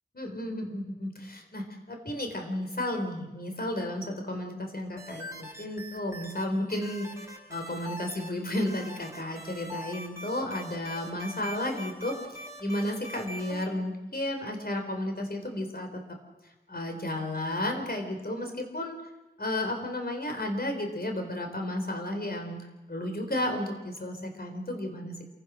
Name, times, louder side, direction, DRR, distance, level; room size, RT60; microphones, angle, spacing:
voice 1, 0.2-16.2 16.7-19.0 19.4-25.2, left 1 dB, 55° left, 4 dB, 4.4 m, -33 dB
sound 1, 5.0-6.4 6.7-8.3 8.5-13.7, equal, 15° right, 5.4 m, -42 dB
27.5 x 16.5 x 6.5 m, 1.0 s
wide cardioid pair, 40°, 19 cm